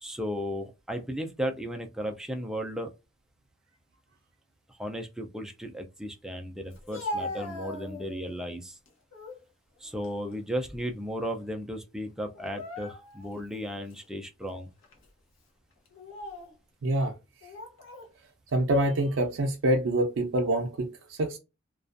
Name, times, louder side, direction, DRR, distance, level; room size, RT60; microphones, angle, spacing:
voice 1, 0.0-2.9 4.7-8.8 9.8-14.7, equal, 5° right, 0.4 m, -35 dB
Speech, 6.7-8.4 8.9-9.4 9.9-11.1 11.4-11.6 12.4-13.3 13.9-14.0 14.8-15.1 15.9-16.6 17.4-18.1, left 2 dB, 75° left, 0.8 m, -40 dB
voice 2, 16.8-17.1 18.5-21.4, right 1 dB, 70° right, 0.5 m, -26 dB
2.4 x 2.3 x 2.4 m
head